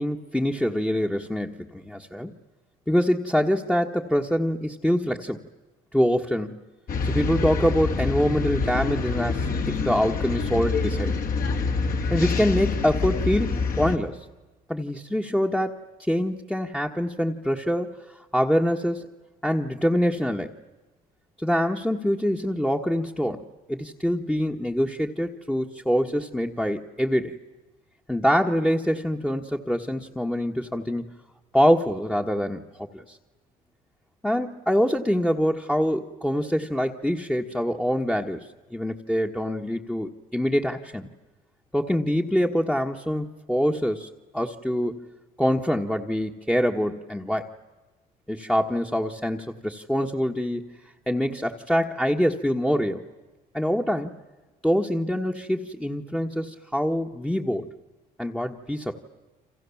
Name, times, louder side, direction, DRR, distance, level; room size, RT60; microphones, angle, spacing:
voice 1, 0.0-2.3 2.9-5.4 5.9-6.6 7.0-11.2 12.1-14.3 14.7-19.1 19.4-20.5 21.4-27.4 28.1-31.1 31.5-33.2 34.2-41.1 41.7-45.1 45.4-47.5 48.3-50.6 51.1-53.1 53.5-54.1 54.6-57.7 58.2-59.0, equal, 5° left, 0 dB, 1.4 m, -25 dB
sound 1, 6.9-14.0, left 4 dB, 60° left, 2.9 m, -26 dB
30.0 x 26.5 x 7.2 m, 1.2 s
cardioid pair, 110°, 17 cm